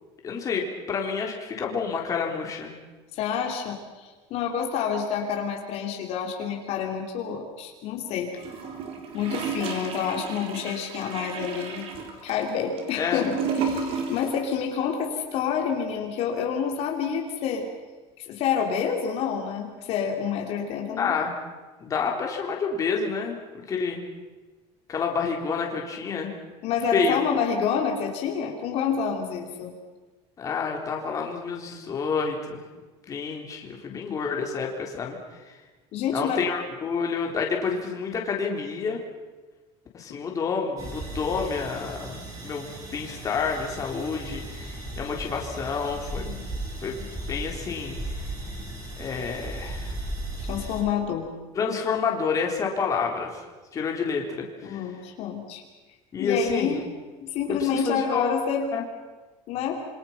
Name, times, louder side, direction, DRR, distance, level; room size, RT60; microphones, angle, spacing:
voice 1, 0.2-2.8 13.0-13.3 21.0-21.4 21.8-24.0 24.9-26.3 26.9-27.2 30.4-32.6 33.1-35.2 36.1-39.0 39.9-46.4 46.8-48.0 49.0-49.9 51.5-53.3 53.7-54.8 56.1-56.7 57.5-58.4 58.7-58.8, left 5 dB, 25° left, 1 dB, 3.7 m, -29 dB
voice 2, 3.1-8.3 9.1-11.9 12.2-17.7 18.2-21.1 26.6-29.7 35.9-36.4 50.5-51.3 54.6-55.6 56.2-56.8 57.2-58.7 59.5-59.8, left 7 dB, 50° left, 2 dB, 3.1 m, -28 dB
Gurgling / Toilet flush, 8.4-14.5 14.7-14.8, right 5 dB, 45° right, 4.0 m, -33 dB
sound 1, 40.8-50.8, right 1 dB, 25° right, 6.8 m, -36 dB
27.0 x 25.0 x 5.8 m, 1.3 s
cardioid pair, 170°, 13 cm